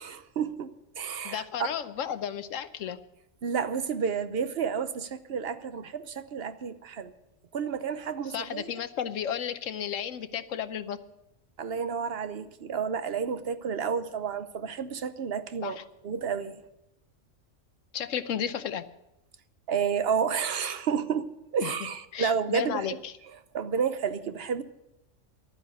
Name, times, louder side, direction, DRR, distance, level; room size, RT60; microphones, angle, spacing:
voice 1, 0.0-1.4 3.4-7.1 7.5-8.7 11.6-15.8 16.0-16.6 19.7-22.9 23.5-24.6, right 6 dB, 55° right, 1.0 m, -31 dB
voice 2, 1.2-3.0 8.3-11.0 15.6-15.8 17.9-18.9 21.6-21.7 22.1-23.1, left 9 dB, 80° left, 1.2 m, -33 dB
12.0 x 9.7 x 8.2 m
omnidirectional pair, 1.3 m